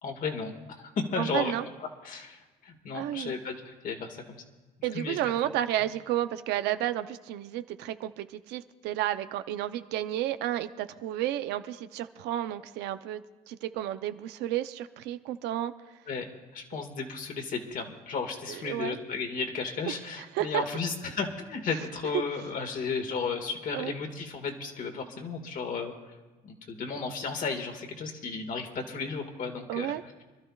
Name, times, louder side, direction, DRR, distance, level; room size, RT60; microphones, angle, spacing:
voice 1, 0.0-1.5 2.0-4.4 4.9-5.2 16.1-25.9 26.4-29.9, left 5 dB, 55° left, 4 dB, 1.8 m, -34 dB
voice 2, 1.2-1.6 2.9-3.4 4.8-15.7 18.5-19.0 19.9-20.6 23.7-23.9 29.7-30.0, right 13 dB, 90° right, 11 dB, 0.6 m, -32 dB
26.5 x 12.5 x 2.4 m, 1.3 s
cardioid pair, 110°, 17 cm